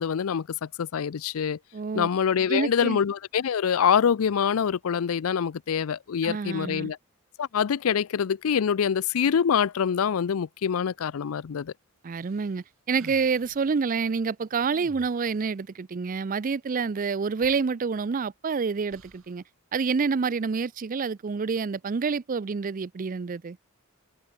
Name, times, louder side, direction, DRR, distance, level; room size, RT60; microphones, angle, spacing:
voice 1, 0.0-1.6 1.9-7.0 7.4-11.7, left 7 dB, 85° left, 0.4 m, -25 dB
voice 2, 1.7-2.1 2.5-3.0 6.2-6.9 12.0-19.4 19.7-23.6, right 5 dB, 40° right, 0.4 m, -28 dB
sound 1, 12.1-13.7 14.6-15.5 17.0-17.1 17.4-18.4 18.9-19.4, right 2 dB, 70° right, 3.9 m, -52 dB
head